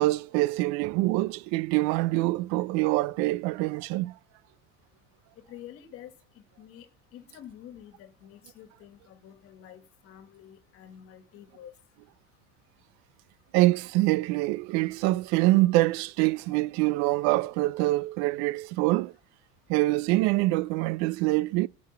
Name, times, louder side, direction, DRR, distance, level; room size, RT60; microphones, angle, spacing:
voice 1, 0.0-4.1 13.5-19.1 19.7-21.7, right 19 dB, 60° right, 0.5 m, -25 dB
voice 2, 5.5-6.9 7.1-11.7, left 10 dB, 45° left, 1.9 m, -48 dB
11.5 x 5.1 x 6.7 m
cardioid pair, 145°, 31 cm